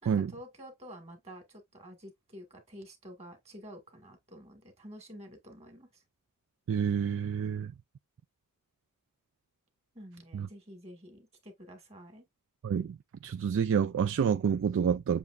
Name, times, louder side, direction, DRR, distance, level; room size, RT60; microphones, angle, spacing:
voice 1, 0.0-6.0 9.9-12.2, equal, 30° right, 2.0 m, -49 dB
voice 2, 6.7-7.7 10.3-10.5 12.6-13.0 13.2-15.2, right 7 dB, 60° right, 0.3 m, -28 dB
7.1 x 2.9 x 2.6 m
head